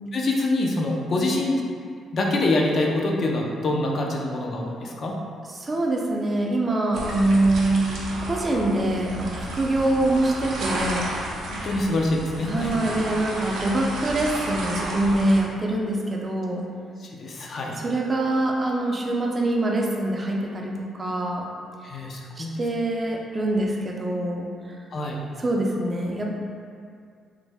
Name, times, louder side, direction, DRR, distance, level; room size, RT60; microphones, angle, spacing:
voice 1, 0.1-1.6 2.1-5.1 11.6-12.7 17.0-17.8 21.8-22.6 24.9-25.2, left 2 dB, 55° left, -1 dB, 0.4 m, -25 dB
voice 2, 5.5-11.1 12.4-16.7 17.8-21.5 21.9-22.1 22.4-24.8 25.4-26.3, right 1 dB, 30° right, -1 dB, 0.4 m, -24 dB
sound 1, 6.9-15.4, right 1 dB, 80° right, 0.5 m, -32 dB
3.1 x 2.0 x 3.4 m, 2.2 s
cardioid pair, 90°, 0 cm